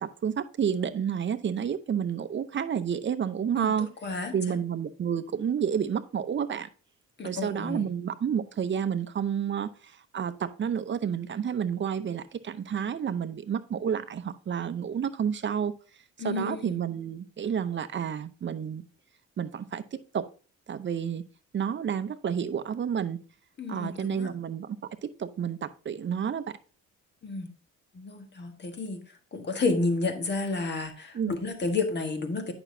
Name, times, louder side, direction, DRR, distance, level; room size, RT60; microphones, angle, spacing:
voice 1, 0.0-3.9 4.3-6.7 7.2-9.7 10.1-15.7 16.2-18.8 19.4-19.8 20.1-20.3 20.7-21.2 21.5-23.2 23.7-24.8 25.0-26.5 31.1-31.3, right 8 dB, 40° right, 0.7 m, -30 dB
voice 2, 3.6-4.6 7.2-7.8 16.2-16.8 23.6-24.3 27.2-27.5 27.9-29.0 29.3-32.5, left 3 dB, 35° left, 1.5 m, -31 dB
8.9 x 6.0 x 2.7 m
cardioid pair, 90°, 30 cm